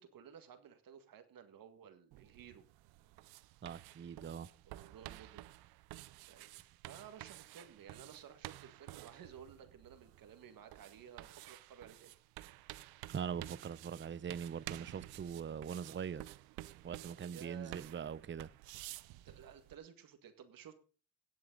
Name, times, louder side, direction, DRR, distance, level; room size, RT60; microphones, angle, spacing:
voice 1, 0.0-2.6 4.7-5.5 6.3-12.1 17.3-18.4 19.1-20.7, right 8 dB, 65° right, 1.9 m, -55 dB
sound 1, 2.1-19.8, right 17 dB, 90° right, 0.6 m, -52 dB
voice 2, 3.6-4.5 13.1-16.2 16.8-18.5, right 7 dB, 30° right, 0.7 m, -42 dB
18.0 x 7.7 x 4.0 m
supercardioid pair, 65°, 36 cm